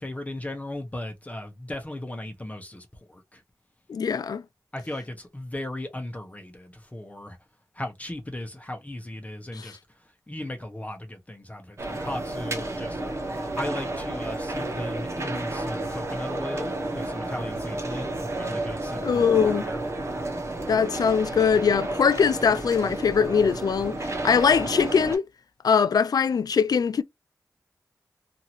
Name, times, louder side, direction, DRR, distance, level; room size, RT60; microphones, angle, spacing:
voice 1, 0.0-3.4 4.7-7.4 7.7-9.8 10.0-19.8, left 1 dB, 20° left, 0.9 m, -37 dB
voice 2, 3.9-4.4 9.5-9.7 19.0-19.6 20.7-25.2 25.6-27.0, left 6 dB, 75° left, 0.3 m, -22 dB
sound 1, 11.8-25.2, right 2 dB, 45° right, 1.0 m, -31 dB
2.7 x 2.6 x 2.9 m
cardioid pair, 55°, 7 cm